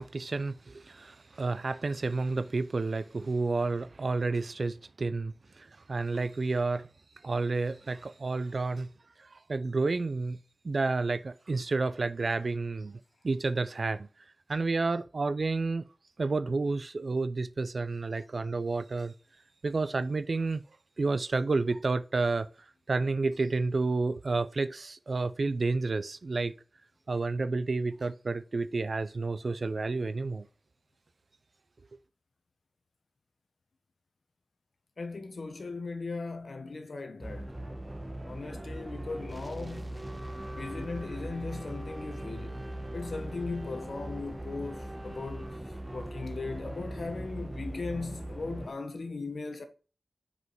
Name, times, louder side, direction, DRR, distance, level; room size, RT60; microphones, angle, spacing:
voice 1, 0.0-6.9 7.2-8.9 9.2-10.4 10.6-14.1 14.5-15.9 16.2-19.1 19.6-20.6 21.0-22.5 22.9-26.5 27.1-30.4, right 3 dB, 60° right, 0.5 m, -30 dB
voice 2, 35.0-37.6 38.2-39.9 40.5-42.7 42.9-45.5 45.9-49.6, left 3 dB, 65° left, 1.1 m, -38 dB
sound 1, 37.2-48.7, right 1 dB, 20° right, 1.0 m, -40 dB
6.5 x 5.1 x 4.5 m
wide cardioid pair, 60°, 0 cm